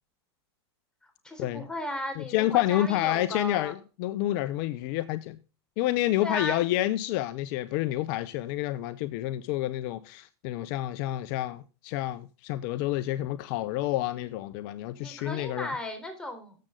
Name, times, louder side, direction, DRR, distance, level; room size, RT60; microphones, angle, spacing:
voice 1, 1.2-3.7 6.2-6.6 15.0-16.5, left 1 dB, 5° left, 3.7 m, -35 dB
voice 2, 2.2-5.4 5.8-15.7, left 15 dB, 55° left, 0.7 m, -29 dB
13.0 x 7.5 x 3.8 m
hypercardioid pair, 125°, 14 cm